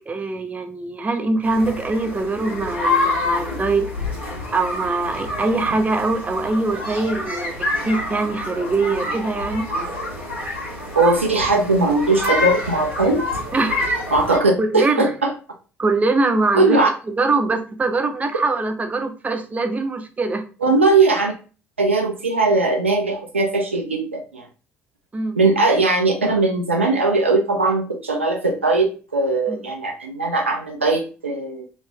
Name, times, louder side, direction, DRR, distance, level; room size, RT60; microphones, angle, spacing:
voice 1, 0.1-3.9 4.5-9.6 13.5-13.9 14.6-15.1 15.8-16.8 17.1-20.4 25.1-25.4 29.5-29.6, right 3 dB, 20° right, 6 dB, 0.6 m, -23 dB
sound 1, 1.4-14.4, left 2 dB, 90° left, 1.5 m, -27 dB
voice 2, 10.9-13.2 14.1-15.3 16.5-16.9 20.6-21.3 21.8-24.5 25.4-31.6, right 3 dB, 85° right, 2 dB, 0.4 m, -19 dB
3.2 x 3.1 x 3.2 m, 0.35 s
figure-of-eight pair, 50°, 7 cm